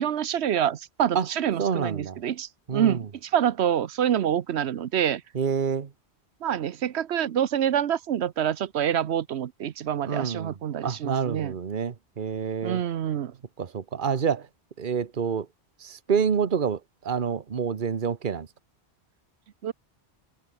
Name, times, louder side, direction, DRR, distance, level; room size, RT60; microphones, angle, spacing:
voice 1, 0.0-5.2 6.4-11.5 12.6-13.3 19.6-19.7, right 9 dB, 85° right, 1.1 m, -26 dB
voice 2, 1.6-2.2 2.7-3.1 5.3-5.9 10.0-10.6 10.8-12.8 13.6-14.5 14.8-15.5 15.8-16.8 17.0-18.5, right 6 dB, 50° right, 1.3 m, -27 dB
omnidirectional pair, 1.1 m